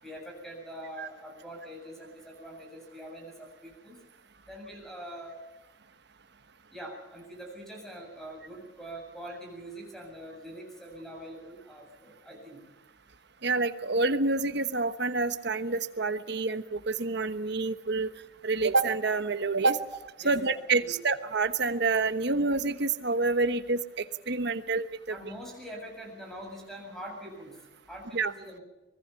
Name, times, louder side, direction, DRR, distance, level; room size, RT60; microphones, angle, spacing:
voice 1, 0.0-4.1 4.4-5.5 6.7-12.6 20.2-20.4 20.8-21.0 23.5-23.6 24.6-24.7 25.1-28.6, equal, ahead, 0 dB, 7.4 m, -44 dB
voice 2, 13.4-18.1 18.4-19.8 20.2-25.2 28.1-28.3, right 3 dB, 60° right, 10 dB, 1.2 m, -28 dB
25.0 x 20.5 x 5.9 m, 1.1 s
head